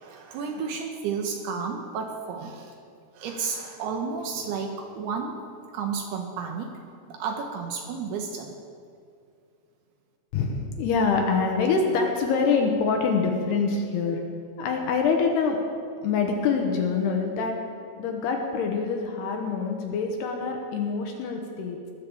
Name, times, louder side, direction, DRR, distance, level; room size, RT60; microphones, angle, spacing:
voice 1, 0.0-2.7 3.2-5.4 5.7-6.7 7.1-8.5, right 5 dB, 75° right, 3 dB, 2.6 m, -32 dB
voice 2, 10.3-14.2 14.6-15.6 16.0-17.6 18.0-21.8, left 5 dB, 70° left, 2 dB, 2.9 m, -25 dB
19.5 x 6.6 x 7.1 m, 2.4 s
omnidirectional pair, 5.3 m